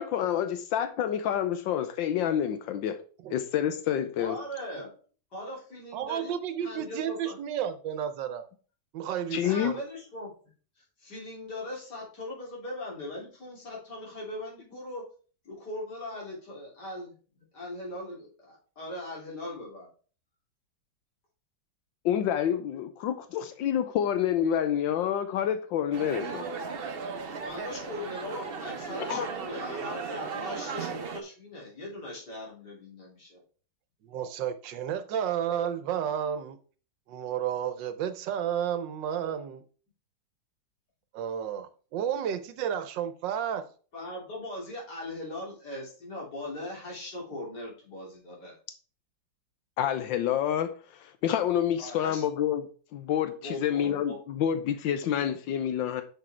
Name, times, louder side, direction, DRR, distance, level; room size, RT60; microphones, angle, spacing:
voice 1, 0.0-3.0 3.3-4.4 9.3-9.8 22.0-26.5 29.1-29.3 49.8-56.0, left 9 dB, 80° left, 10 dB, 1.4 m, -28 dB
voice 2, 4.2-4.9 5.3-6.3 6.6-7.4 9.4-10.3 11.0-15.0 15.4-19.9 27.4-33.4 43.9-48.6 51.8-52.3 53.4-54.2, left 1 dB, 60° left, -4 dB, 3.9 m, -40 dB
voice 3, 5.9-8.4 8.9-9.8 34.0-36.6 37.1-39.6 41.1-43.6, right 9 dB, 75° right, 11 dB, 1.4 m, -32 dB
ambience mid crowd ext sant celoni, 25.9-31.2, right 5 dB, 45° right, 0.7 m, -36 dB
6.4 x 6.1 x 4.4 m, 0.39 s
omnidirectional pair, 2.0 m